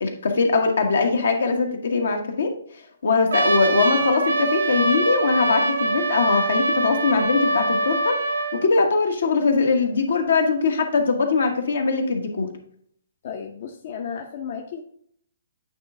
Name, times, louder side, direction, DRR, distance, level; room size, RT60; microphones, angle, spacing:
voice 1, 0.0-2.5 3.0-8.2 8.5-12.5, left 4 dB, 75° left, 4 dB, 1.1 m, -21 dB
Trumpet, 3.3-8.6, right 2 dB, 85° right, 0.7 m, -23 dB
voice 2, 13.2-14.8, left 7 dB, 50° left, 3 dB, 0.6 m, -33 dB
8.5 x 3.2 x 3.6 m, 0.66 s
hypercardioid pair, 145°, 0 cm